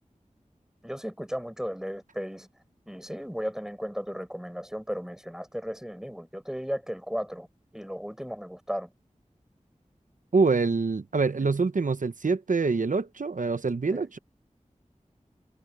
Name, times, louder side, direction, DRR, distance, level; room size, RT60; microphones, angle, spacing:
voice 1, 0.8-2.5 2.9-7.5 7.7-8.9 13.9-14.1, equal, 5° right, 5.7 m, -35 dB
voice 2, 10.3-14.2, right 4 dB, 90° right, 0.8 m, -25 dB
wide cardioid pair, 50°, 13 cm